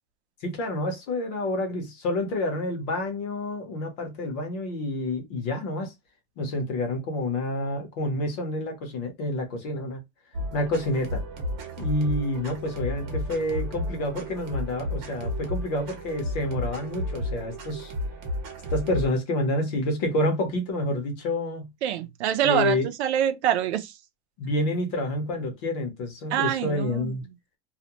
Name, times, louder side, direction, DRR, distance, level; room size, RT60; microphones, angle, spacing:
voice 1, 0.4-5.9 6.4-10.0 10.5-11.2 11.8-17.9 18.7-21.7 22.4-22.9 24.4-27.2, left 1 dB, 40° left, 0.8 m, -28 dB
sound 1, 10.3-19.1, left 1 dB, 45° right, 0.9 m, -33 dB
voice 2, 21.8-23.9 26.3-27.1, right 10 dB, 80° right, 0.6 m, -25 dB
2.4 x 2.1 x 2.8 m
supercardioid pair, 175°, 33 cm